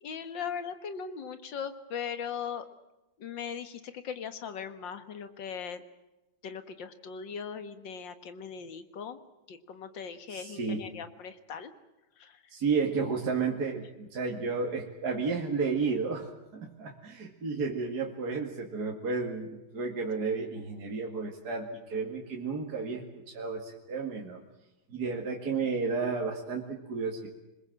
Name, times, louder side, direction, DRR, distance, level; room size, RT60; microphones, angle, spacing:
voice 1, 0.0-2.7 3.2-5.8 6.4-9.2 9.5-11.7 12.2-12.5, left 7 dB, 60° left, 10 dB, 2.2 m, -39 dB
voice 2, 10.3-10.8 12.5-24.4 24.9-27.3, right 4 dB, 50° right, 1 dB, 2.7 m, -32 dB
25.5 x 21.0 x 7.6 m, 0.98 s
omnidirectional pair, 2.3 m